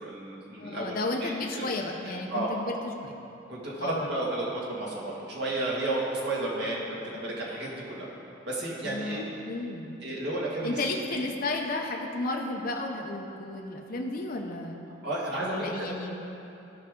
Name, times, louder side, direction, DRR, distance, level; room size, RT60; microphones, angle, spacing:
voice 1, 0.0-0.9 1.2-1.7 2.0-2.6 3.5-8.1 8.5-9.2 10.0-10.8 11.1-11.2 15.0-15.9, right 2 dB, 60° right, -5 dB, 2.2 m, -32 dB
voice 2, 0.6-3.1 3.8-4.1 8.8-9.2 9.4-10.0 10.6-14.8 15.5-16.2, left 2 dB, 50° left, 1 dB, 0.8 m, -33 dB
15.5 x 5.6 x 3.8 m, 2.9 s
head